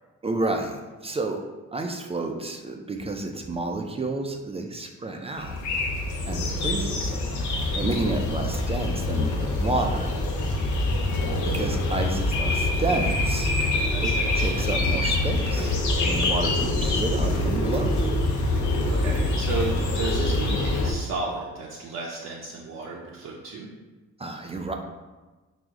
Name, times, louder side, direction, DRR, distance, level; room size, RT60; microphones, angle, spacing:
voice 1, 0.2-1.4 1.7-5.6 6.3-10.1 10.6-10.9 11.2-13.6 14.0-18.0 24.2-24.7, right 2 dB, 20° right, 3 dB, 0.3 m, -31 dB
sound 1, 5.4-20.9, left 2 dB, 75° left, 0.7 m, -25 dB
voice 2, 13.9-14.8 18.9-23.7, right 3 dB, 60° right, -3 dB, 0.6 m, -33 dB
4.7 x 2.0 x 3.6 m, 1.2 s
cardioid pair, 90°, 30 cm